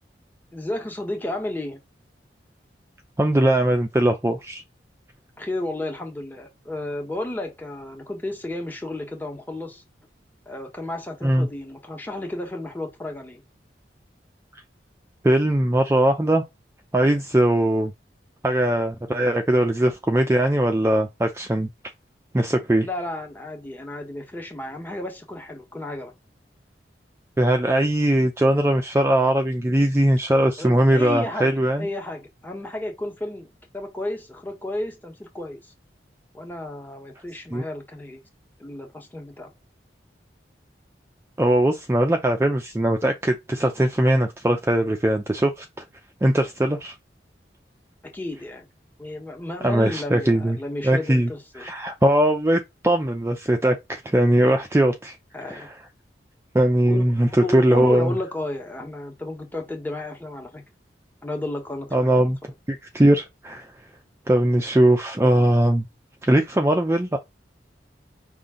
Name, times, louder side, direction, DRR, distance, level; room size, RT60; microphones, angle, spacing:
voice 1, 0.5-1.8 5.4-9.8 10.5-13.4 22.8-26.1 30.6-33.5 33.7-35.7 36.3-38.2 38.6-39.5 48.0-48.7 49.0-51.7 55.3-55.7 56.9-60.6 61.2-62.3, left 1 dB, 10° left, 1.2 m, -32 dB
voice 2, 3.2-4.6 11.2-11.5 15.2-16.4 16.9-17.9 18.4-21.7 22.3-22.9 27.4-31.9 37.5-37.6 41.4-45.8 46.2-46.9 49.6-50.6 50.8-51.3 51.6-55.2 55.4-55.7 56.5-58.1 61.9-62.4 62.7-63.7 64.3-65.9 66.2-67.2, right 1 dB, 15° right, 0.4 m, -20 dB
5.4 x 2.5 x 3.7 m
head